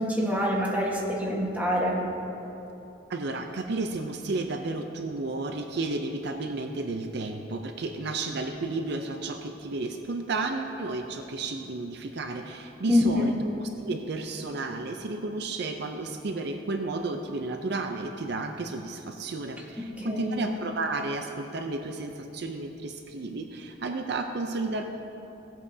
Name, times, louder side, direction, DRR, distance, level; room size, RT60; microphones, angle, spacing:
voice 1, 0.0-2.1 12.9-13.3 19.8-20.4, left 1 dB, 10° right, -3 dB, 1.4 m, -26 dB
voice 2, 3.1-24.8, right 3 dB, 60° right, 5 dB, 0.5 m, -32 dB
16.5 x 8.3 x 2.7 m, 2.9 s
head